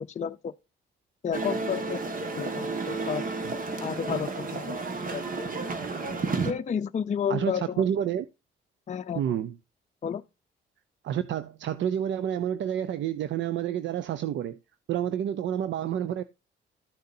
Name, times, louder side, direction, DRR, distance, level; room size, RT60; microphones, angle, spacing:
voice 1, 0.1-0.5 1.2-2.0 2.4-3.2 3.8-4.7 5.1-5.3 6.5-7.8 8.9-9.2 10.0-10.2, left 7 dB, 35° left, 0.6 m, -31 dB
sound 1, 1.3-6.5, right 3 dB, 45° right, 1.8 m, -31 dB
voice 2, 7.3-8.3 9.1-9.6 11.0-14.6 14.9-16.2, right 9 dB, 70° right, 0.6 m, -29 dB
13.5 x 6.5 x 2.7 m
cardioid pair, 90°, 20 cm